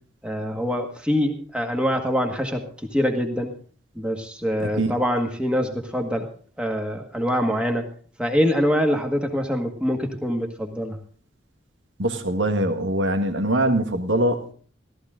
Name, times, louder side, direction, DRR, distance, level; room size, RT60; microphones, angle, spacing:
voice 1, 0.2-3.5 4.0-6.3 6.6-7.9 8.2-11.0, equal, 5° right, 3 dB, 1.8 m, -24 dB
voice 2, 4.6-4.9 12.0-14.4, right 1 dB, 85° right, 6 dB, 1.8 m, -23 dB
14.5 x 14.0 x 3.8 m, 0.43 s
head